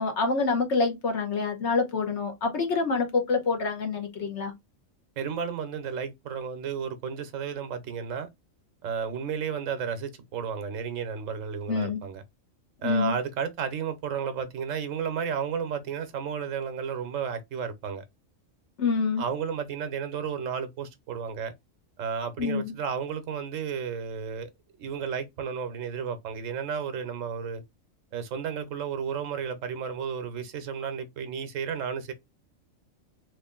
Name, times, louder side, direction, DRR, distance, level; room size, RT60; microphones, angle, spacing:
voice 1, 0.0-4.5 11.7-12.0 12.8-13.2 18.8-19.2 22.4-22.7, left 4 dB, 65° left, 1.2 m, -26 dB
voice 2, 5.2-8.3 8.8-12.2 12.8-18.0 19.2-21.5 22.0-24.5 24.8-27.6 28.1-32.1, right 7 dB, 80° right, 1.1 m, -32 dB
3.1 x 2.5 x 3.6 m
omnidirectional pair, 1.3 m